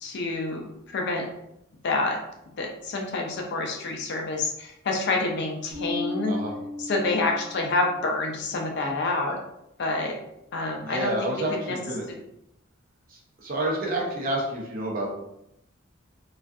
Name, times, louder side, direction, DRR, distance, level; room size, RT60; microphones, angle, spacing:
voice 1, 0.0-1.3 1.8-2.2 2.6-6.3 6.8-9.4 9.8-10.2 10.5-11.1 11.7-11.8, left 2 dB, 55° left, 1 dB, 0.5 m, -27 dB
Bass guitar, 5.7-8.1, left 1 dB, 10° left, 0.8 m, -35 dB
voice 2, 10.8-12.1 13.1-15.1, right 1 dB, 45° right, -2 dB, 0.6 m, -29 dB
2.4 x 2.3 x 2.3 m, 0.82 s
head